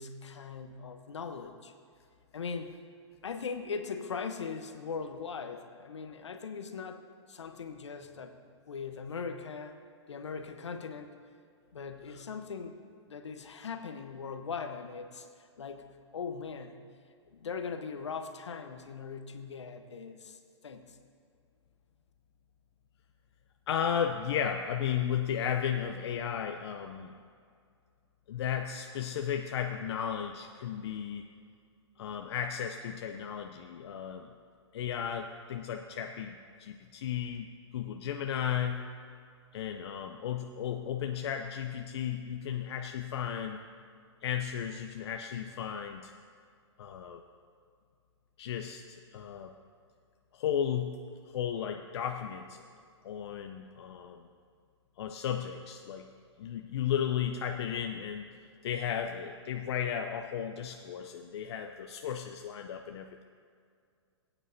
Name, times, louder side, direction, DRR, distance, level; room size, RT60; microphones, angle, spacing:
voice 1, 0.0-1.7 2.3-2.8 3.2-7.0 7.3-8.3 8.7-9.8 10.1-11.2 11.7-12.8 13.1-16.8 17.3-21.0, left 5 dB, 80° left, 8 dB, 1.0 m, -40 dB
voice 2, 23.7-27.1 28.3-31.3 32.0-34.3 34.7-37.5 37.7-38.8 39.5-43.6 44.2-46.1 46.8-47.2 48.4-49.5 50.3-51.0 51.3-52.6 53.0-54.3 55.0-56.1 56.4-58.3 58.6-63.2, left 8 dB, 65° left, 5 dB, 0.7 m, -34 dB
21.0 x 9.1 x 2.8 m, 2.2 s
hypercardioid pair, 115°, 15 cm